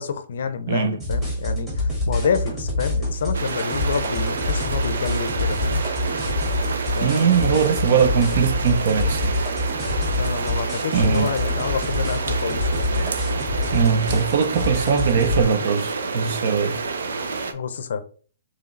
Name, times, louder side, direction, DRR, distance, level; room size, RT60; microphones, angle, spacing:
voice 1, 0.0-5.8 7.0-8.1 10.2-13.1 17.5-18.0, left 6 dB, 65° left, 0.5 m, -28 dB
voice 2, 0.7-1.0 7.0-9.4 10.9-11.3 13.7-16.8, right 6 dB, 45° right, 0.6 m, -21 dB
sound 1, 1.0-15.4, left 1 dB, 10° right, 1.5 m, -26 dB
sound 2, 3.3-17.5, right 4 dB, 90° right, 0.6 m, -29 dB
4.6 x 3.0 x 3.1 m
hypercardioid pair, 170°, 0 cm